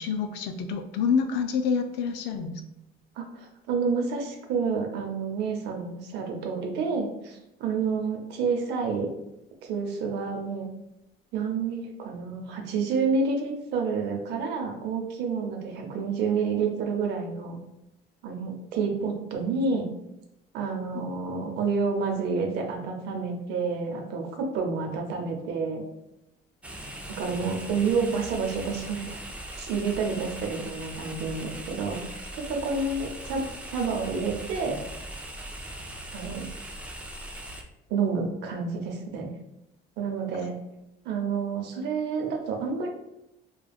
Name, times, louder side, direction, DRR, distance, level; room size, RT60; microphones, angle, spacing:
voice 1, 0.0-2.6, left 6 dB, 85° left, 6 dB, 0.4 m, -27 dB
voice 2, 3.2-9.1 9.6-10.7 11.3-17.6 18.2-19.9 20.5-25.8 27.2-29.2 29.6-33.5 33.7-34.8 36.1-36.5 37.9-39.3 40.0-40.5 41.0-42.9, right 5 dB, 80° right, 2 dB, 0.7 m, -29 dB
sound 1, 26.6-37.6, right 1 dB, 10° right, 0.4 m, -40 dB
3.4 x 2.3 x 2.3 m, 0.87 s
cardioid pair, 110°, 17 cm